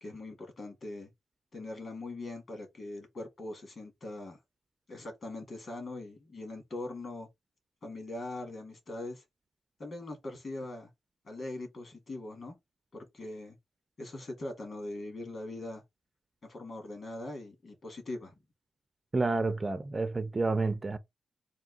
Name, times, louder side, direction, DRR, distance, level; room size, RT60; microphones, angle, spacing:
voice 1, 0.0-1.1 1.5-4.4 4.9-7.3 7.8-9.2 9.8-10.9 11.2-12.6 12.9-13.6 14.0-15.8 16.4-18.3, left 2 dB, 40° left, 1.8 m, -41 dB
voice 2, 19.1-21.0, right 3 dB, 20° right, 0.3 m, -29 dB
3.7 x 2.7 x 3.8 m
wide cardioid pair, 155°, 0 cm